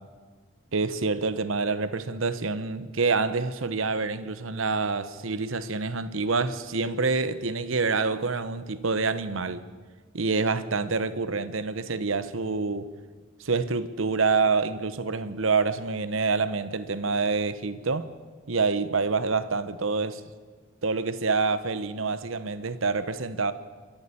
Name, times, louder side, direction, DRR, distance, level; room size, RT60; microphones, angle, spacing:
voice 1, 0.7-9.7 10.1-12.9 13.4-18.1 18.5-20.2 20.8-23.5, right 4 dB, 75° right, 1.0 m, -27 dB
27.0 x 11.5 x 9.9 m
head